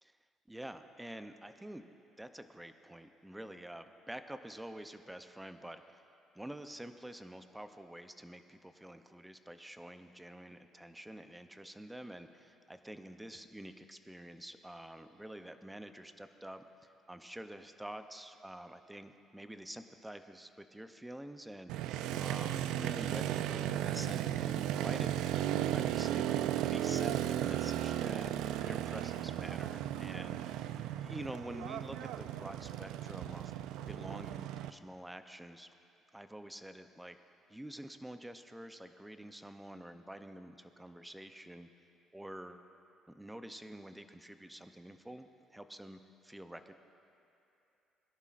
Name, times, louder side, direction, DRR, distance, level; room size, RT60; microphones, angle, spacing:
voice 1, 0.5-1.9 2.2-6.0 6.3-16.6 17.1-25.1 25.5-26.4 26.7-30.7 31.0-33.5 33.9-35.7 36.1-37.2 37.5-41.7 42.1-42.7 43.1-46.7, right 1 dB, 5° right, 8 dB, 0.6 m, -48 dB
Motorcycle, 21.7-34.7, right 12 dB, 85° right, 0.3 m, -35 dB
21.0 x 11.0 x 2.5 m, 2.9 s
cardioid pair, 110°, 0 cm